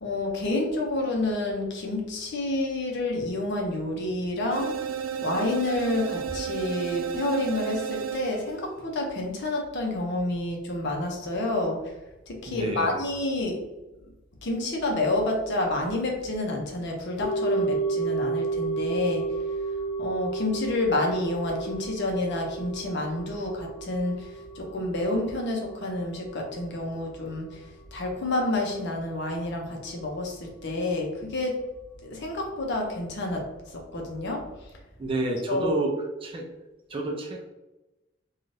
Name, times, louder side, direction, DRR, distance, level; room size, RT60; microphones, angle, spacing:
voice 1, 0.0-4.7 5.2-11.8 12.3-13.6 14.4-19.2 20.0-27.7 27.9-31.6 32.0-34.4 35.5-35.7, left 2 dB, 60° left, 1 dB, 0.6 m, -29 dB
sound 1, 4.5-8.7, right 7 dB, 85° right, 0.4 m, -32 dB
voice 2, 12.5-13.0 35.0-36.5 36.9-37.4, right 2 dB, 25° right, 1 dB, 0.4 m, -30 dB
sound 2, 17.2-27.5 27.8-27.9, right 4 dB, 30° left, 1.0 m, -32 dB
2.6 x 2.3 x 3.1 m, 1.0 s
head